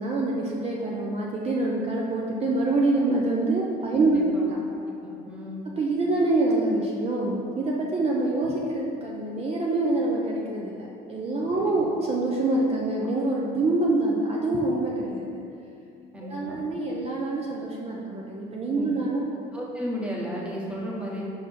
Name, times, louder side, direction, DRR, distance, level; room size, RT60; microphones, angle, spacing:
voice 1, 0.0-4.6 5.8-15.3 16.2-19.3, right 2 dB, 35° right, -3 dB, 0.7 m, -26 dB
voice 2, 4.0-4.5 5.0-5.7 11.5-11.7 16.1-16.6 18.7-18.9 19.5-21.3, equal, 5° right, -4 dB, 1.2 m, -34 dB
5.4 x 4.1 x 5.1 m, 2.5 s
cardioid pair, 110°, 17 cm